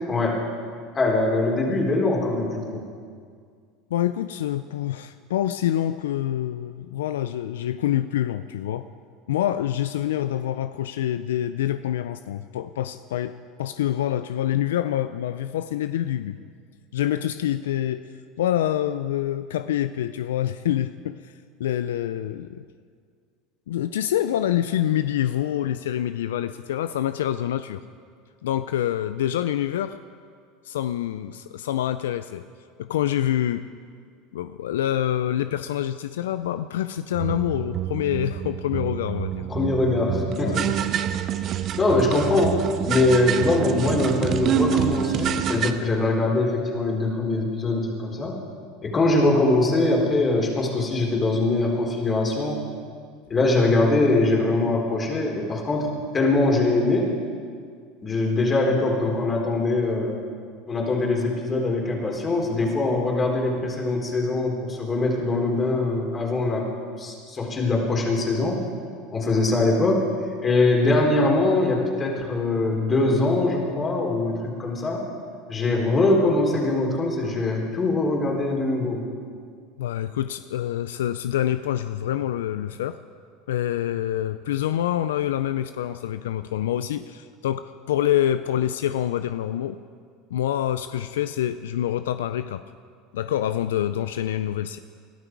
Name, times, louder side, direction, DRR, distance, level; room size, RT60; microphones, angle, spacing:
voice 1, 0.1-0.4 0.9-2.8 39.5-40.7 41.8-48.4 48.8-52.7 53.3-57.2 58.0-60.1 60.7-66.7 67.0-68.6 69.1-70.1 70.4-75.0 75.5-79.0, left 2 dB, 30° left, 0 dB, 4.0 m, -22 dB
voice 2, 3.9-8.9 9.3-16.4 16.9-18.1 18.4-21.2 21.6-22.6 23.7-27.8 28.4-30.0 30.6-32.4 32.8-33.6 34.3-39.4 40.4-40.6 79.8-83.0 83.5-89.8 90.3-92.6 93.1-94.8, left 11 dB, 85° left, 12 dB, 0.4 m, -26 dB
sound 1, 37.1-45.7, right 9 dB, 45° right, 0.9 m, -27 dB
21.5 x 12.5 x 4.7 m, 2.1 s
hypercardioid pair, 90°, 0 cm